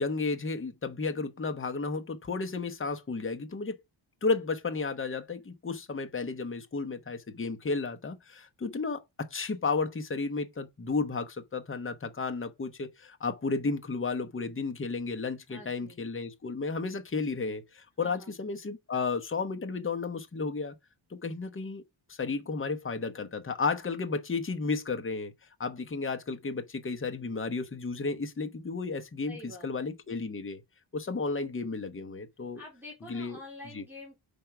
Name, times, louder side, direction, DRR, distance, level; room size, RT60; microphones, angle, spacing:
voice 1, 0.0-3.8 4.2-20.7 21.1-21.8 22.1-25.3 25.6-30.6 30.9-32.6 33.1-33.4 33.7-33.8, left 4 dB, 25° left, 0.8 m, -33 dB
voice 2, 15.5-16.0 18.0-18.3 29.3-29.7 32.6-34.2, left 2 dB, 5° right, 3.3 m, -47 dB
5.2 x 4.5 x 5.9 m
wide cardioid pair, 170°, 49 cm